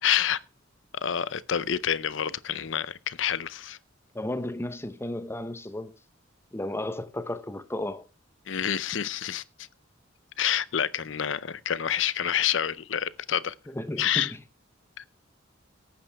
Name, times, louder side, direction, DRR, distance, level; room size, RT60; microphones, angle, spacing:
voice 1, 0.0-0.4 0.9-3.8 8.5-9.7 10.4-13.5 14.0-14.3 15.0-15.1, left 9 dB, 70° left, 0.6 m, -28 dB
voice 2, 4.1-5.9 6.5-8.1 13.7-14.4, left 1 dB, 15° left, 0.8 m, -34 dB
17.5 x 8.9 x 3.5 m
head